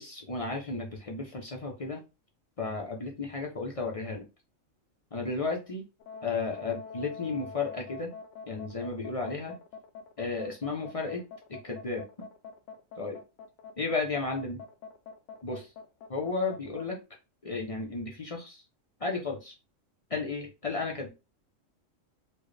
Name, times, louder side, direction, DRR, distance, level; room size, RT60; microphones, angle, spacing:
voice 1, 0.0-2.0 2.6-4.3 5.1-5.8 6.2-8.1 8.5-9.6 10.2-11.2 11.5-12.1 13.0-13.2 13.8-14.6 15.4-15.7 16.1-17.0 17.4-18.6 19.0-19.5 20.1-21.1, left 3 dB, 40° left, 1 dB, 0.5 m, -33 dB
sound 1, 6.0-16.9, left 6 dB, 70° left, 0.9 m, -45 dB
4.3 x 2.1 x 3.2 m, 0.29 s
omnidirectional pair, 1.4 m